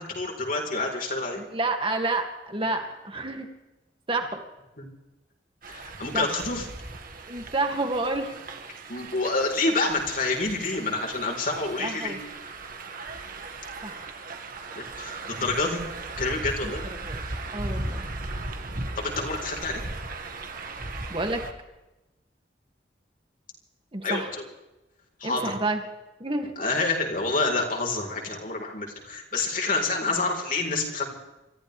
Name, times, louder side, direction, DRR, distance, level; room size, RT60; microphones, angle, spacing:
voice 1, 0.0-1.4 4.8-4.9 5.7-6.6 8.9-12.2 14.7-15.8 16.2-16.8 19.0-19.8 24.0-24.2 25.2-25.4 26.6-31.1, left 3 dB, 50° left, 1 dB, 4.3 m, -28 dB
voice 2, 1.3-3.5 4.1-4.4 6.1-6.3 7.3-8.3 11.8-12.2 13.8-14.0 16.6-17.2 17.5-18.1 21.1-21.4 23.9-24.3 25.2-25.8 26.2-26.5, right 2 dB, 30° right, 4 dB, 2.3 m, -29 dB
sound 1, 5.6-21.5, right 2 dB, 55° right, 1.8 m, -37 dB
28.0 x 14.5 x 3.4 m, 1.0 s
head